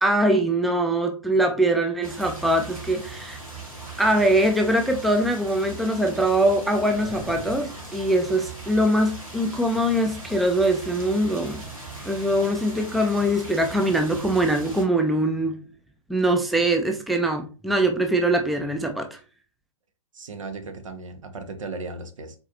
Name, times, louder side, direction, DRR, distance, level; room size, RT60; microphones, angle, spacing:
voice 1, 0.0-3.4 4.0-11.6 12.0-15.6 16.1-19.2, right 1 dB, ahead, 4 dB, 0.4 m, -22 dB
sound 1, 2.0-14.9, right 3 dB, 90° right, 2.0 m, -39 dB
sound 2, 6.1-8.7, equal, 30° right, 1.8 m, -43 dB
voice 2, 20.1-22.3, right 3 dB, 65° right, 7 dB, 1.1 m, -36 dB
4.6 x 4.0 x 2.9 m, 0.36 s
figure-of-eight pair, 115°, 17 cm